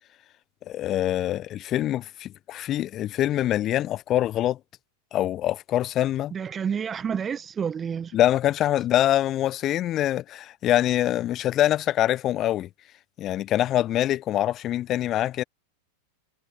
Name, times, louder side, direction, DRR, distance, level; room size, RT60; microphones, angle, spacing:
voice 1, 0.7-4.6 5.1-6.3 8.1-12.7 13.2-15.4, left 13 dB, 30° left, 1.0 m, -24 dB
voice 2, 6.3-8.2, right 7 dB, 20° right, 1.7 m, -29 dB
figure-of-eight pair, 90°, 0 cm